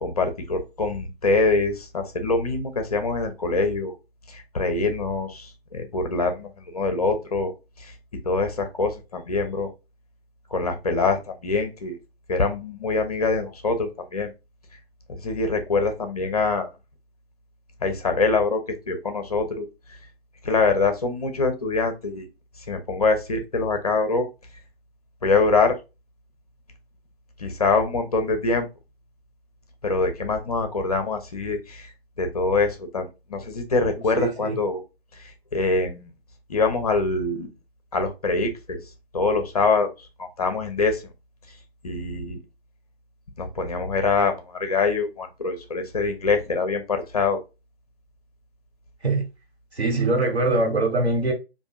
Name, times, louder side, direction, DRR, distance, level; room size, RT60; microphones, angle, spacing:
voice 1, 0.0-3.9 4.3-7.5 7.8-7.9 8.2-9.7 10.5-12.0 12.3-14.3 15.1-16.7 17.8-19.7 20.4-22.3 22.7-24.3 25.2-25.7 27.4-28.7 29.8-31.9 32.2-34.8 35.2-36.1 36.5-37.5 37.9-38.8 39.1-39.9 40.2-41.0 41.8-42.4 43.4-47.4, left 3 dB, 35° left, 0.7 m, -24 dB
voice 2, 33.9-34.6 49.0-49.3 49.7-51.3, right 2 dB, 90° right, 1.6 m, -23 dB
4.4 x 2.6 x 2.3 m
figure-of-eight pair, 145°, 32 cm